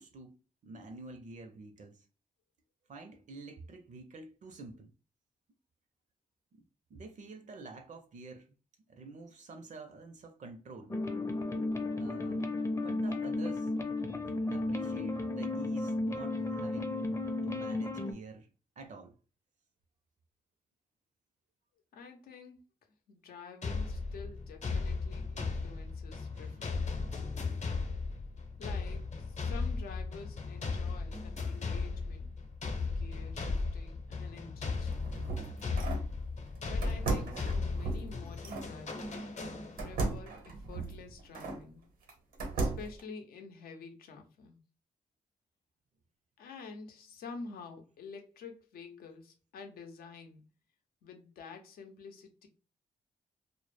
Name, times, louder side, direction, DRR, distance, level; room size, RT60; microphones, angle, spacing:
voice 1, 0.0-2.1 2.9-4.9 6.5-6.6 6.9-8.5 8.9-10.9 12.0-12.5 12.8-13.7 14.5-17.2 17.4-18.5 18.8-19.2 26.2-26.6, right 2 dB, 55° right, 0.5 m, -48 dB
sound 1, 10.9-18.1, left 2 dB, 20° left, 0.5 m, -34 dB
voice 2, 21.9-22.6 23.1-27.2 28.6-32.3 32.6-35.2 36.7-39.3 39.8-41.8 42.6-44.6 46.4-50.4 51.0-52.5, left 4 dB, 85° left, 0.6 m, -49 dB
sound 2, 23.6-40.1, left 4 dB, 50° left, 0.7 m, -36 dB
sound 3, 34.7-36.1 36.8-38.7 39.8-41.6 42.1-43.0, right 3 dB, 85° right, 0.8 m, -36 dB
2.0 x 2.0 x 3.1 m
cardioid pair, 55°, 15 cm